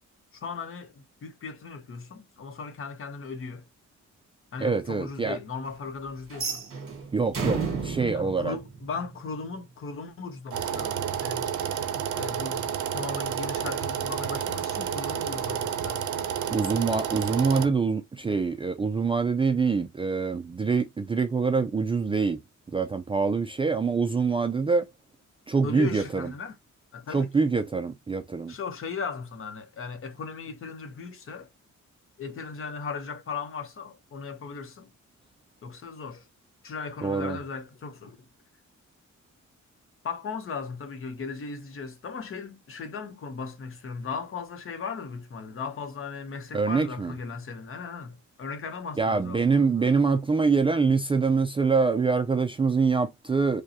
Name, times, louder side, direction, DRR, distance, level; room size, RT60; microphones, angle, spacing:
voice 1, 0.3-3.7 4.5-6.7 8.1-11.5 12.1-16.1 25.6-26.6 26.9-27.3 28.5-31.5 32.2-34.9 35.6-36.3 36.6-38.3 40.0-50.0, left 5 dB, 45° left, 0.8 m, -37 dB
voice 2, 4.6-5.4 7.1-8.6 16.5-22.4 22.7-24.9 25.5-26.3 27.1-28.5 37.0-37.4 46.5-47.1 49.0-53.6, right 4 dB, 20° right, 0.3 m, -25 dB
sound 1, 6.3-9.4, right 5 dB, 45° right, 1.7 m, -32 dB
sound 2, 10.5-17.7, right 9 dB, 80° right, 0.6 m, -30 dB
4.9 x 2.2 x 2.8 m
wide cardioid pair, 155°, 30 cm